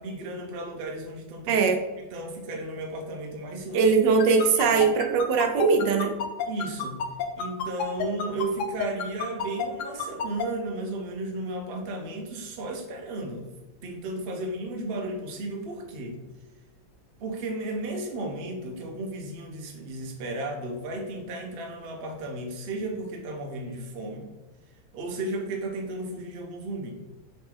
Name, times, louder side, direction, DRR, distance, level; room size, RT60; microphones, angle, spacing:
voice 1, 0.0-1.6 2.0-3.9 4.6-4.7 6.5-7.0 7.3-13.5 13.8-16.2 17.2-24.3 24.9-26.9, right 2 dB, 60° right, 2 dB, 0.6 m, -34 dB
voice 2, 1.5-1.8 3.7-6.2, right 5 dB, 85° right, 4 dB, 1.3 m, -21 dB
sound 1, 4.2-10.4, left 8 dB, 85° left, 0.6 m, -29 dB
3.8 x 2.9 x 3.7 m, 1.1 s
omnidirectional pair, 1.9 m